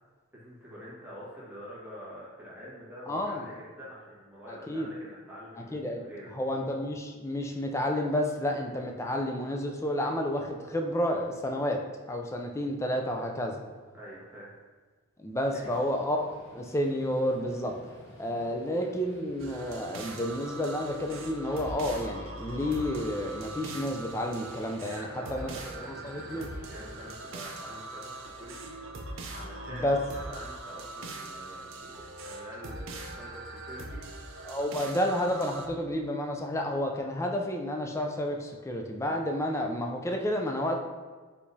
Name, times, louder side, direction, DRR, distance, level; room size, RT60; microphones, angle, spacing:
voice 1, 0.3-6.3 13.9-14.5 15.5-15.7 24.8-26.4 26.7-34.0, equal, 10° right, -9 dB, 1.3 m, -46 dB
voice 2, 3.1-3.5 4.5-4.9 5.7-6.0 6.3-11.8 12.1-13.6 15.2-16.3 16.5-17.7 18.2-25.5 25.8-26.5 29.7-30.0 34.4-40.8, left 1 dB, 15° left, 2 dB, 0.3 m, -30 dB
sound 1, 15.4-27.1, left 1 dB, 70° left, 1.3 m, -52 dB
sound 2, 19.4-35.7, right 2 dB, 60° right, 0.5 m, -41 dB
4.7 x 3.4 x 2.7 m, 1.4 s
head